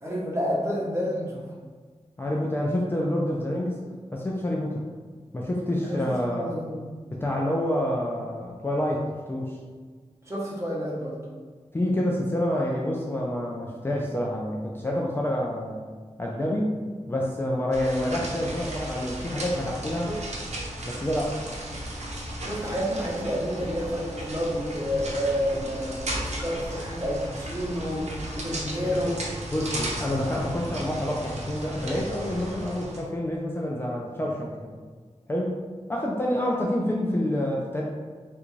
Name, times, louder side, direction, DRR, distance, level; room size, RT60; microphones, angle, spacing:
voice 1, 0.0-1.4 5.8-6.8 10.2-11.2 20.1-20.2 22.4-26.0 26.2-28.0 28.3-29.2, equal, 25° right, -6 dB, 1.0 m, -29 dB
voice 2, 2.2-3.8 4.1-4.8 5.3-6.5 7.1-9.6 11.7-15.8 16.2-16.8 17.1-20.1 20.9-21.4 29.5-34.7 35.3-35.6 35.9-37.8, left 1 dB, 20° left, -3 dB, 0.4 m, -27 dB
sound 1, 17.7-33.0, right 1 dB, 75° right, 0.6 m, -35 dB
3.4 x 2.5 x 3.1 m, 1.5 s
wide cardioid pair, 100°, 12 cm